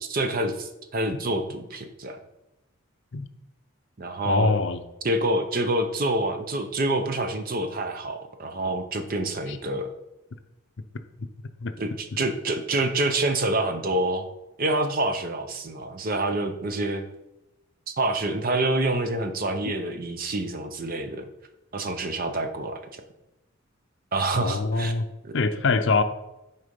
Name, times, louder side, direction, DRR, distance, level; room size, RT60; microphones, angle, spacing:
voice 1, 0.1-2.2 4.0-4.5 5.0-9.9 11.8-14.3 14.6-17.0 17.9-21.3 21.7-23.0 24.1-24.9 25.2-25.4, right 2 dB, 40° right, 7 dB, 0.6 m, -27 dB
voice 2, 4.2-4.8 9.5-9.6 11.6-11.7 12.1-12.2 24.4-25.0 25.3-26.0, left 3 dB, 55° left, 9 dB, 0.5 m, -24 dB
6.6 x 4.2 x 5.2 m, 0.97 s
head